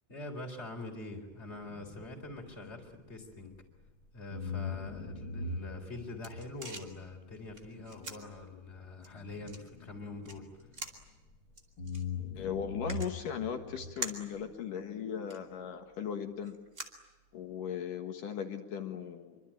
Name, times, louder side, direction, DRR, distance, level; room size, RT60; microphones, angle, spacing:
voice 1, 0.1-3.5 4.1-10.5, left 2 dB, 15° left, 4 dB, 3.8 m, -44 dB
sound 1, 1.3-3.9 4.3-11.4 11.8-14.5, left 3 dB, 35° left, 2.3 m, -43 dB
sound 2, 5.7-17.7, right 2 dB, 20° right, 2.2 m, -48 dB
voice 2, 12.4-16.6 17.3-19.4, left 8 dB, 60° left, 5 dB, 2.8 m, -38 dB
26.0 x 24.5 x 9.0 m, 1.1 s
omnidirectional pair, 4.9 m